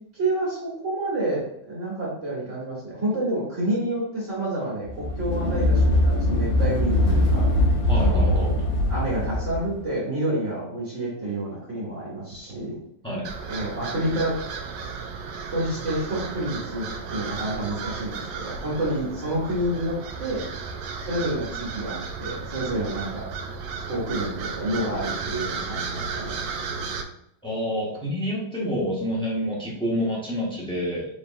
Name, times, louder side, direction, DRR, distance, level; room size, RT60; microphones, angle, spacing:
voice 1, 0.1-7.5 8.0-8.6 8.9-12.8 13.5-14.4 15.5-20.4 21.0-23.2 23.9-26.4, right 1 dB, 35° right, -9 dB, 1.7 m, -29 dB
sound 1, 4.9-9.7, left 1 dB, 65° left, 1.4 m, -21 dB
voice 2, 7.9-8.5 13.0-13.2 27.4-31.1, equal, 5° left, -6 dB, 0.6 m, -28 dB
sound 2, 13.2-27.0, right 5 dB, 90° right, 1.4 m, -34 dB
4.7 x 3.3 x 2.6 m, 0.76 s
omnidirectional pair, 2.3 m